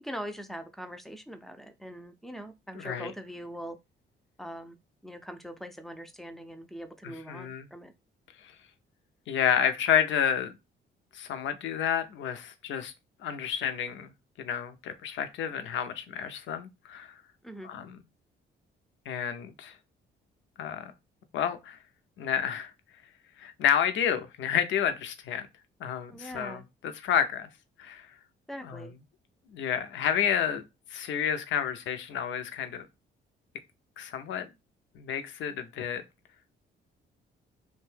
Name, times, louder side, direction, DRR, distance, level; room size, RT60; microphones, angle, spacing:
voice 1, 0.0-3.8 4.4-4.8 5.0-7.9 17.4-17.7 26.1-26.6 28.5-28.9, equal, ahead, 0.4 m, -42 dB
voice 2, 2.8-3.1 7.0-7.7 9.3-10.5 11.1-12.9 13.2-14.1 14.4-17.1 17.6-18.0 19.1-19.7 20.6-20.9 21.3-21.8 22.2-22.7 23.4-25.5 25.8-27.5 27.8-28.1 28.6-28.8 29.5-30.6 30.9-32.9 34.0-34.5 35.0-36.0, left 8 dB, 75° left, 0.5 m, -30 dB
2.6 x 2.2 x 3.2 m
cardioid pair, 90°, 20 cm